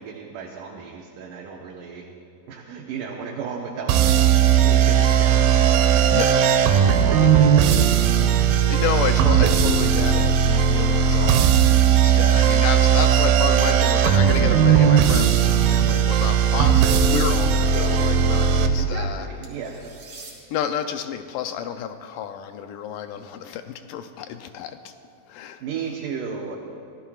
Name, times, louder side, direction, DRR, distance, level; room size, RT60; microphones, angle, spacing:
voice 1, 0.0-2.1 2.5-6.4 7.0-8.1 17.7-18.0 18.8-19.9 25.6-26.6, right 6 dB, 70° right, -2 dB, 2.5 m, -35 dB
sound 1, 3.9-18.7, right 8 dB, 85° right, 2.5 m, -17 dB
voice 2, 6.1-6.4 8.7-19.3 20.5-24.9 25.3-25.6, left 9 dB, 80° left, 7 dB, 1.9 m, -30 dB
sound 2, 16.2-17.0 19.4-20.3, right 3 dB, 45° right, 3.8 m, -43 dB
25.0 x 16.5 x 2.4 m, 2.6 s
omnidirectional pair, 4.3 m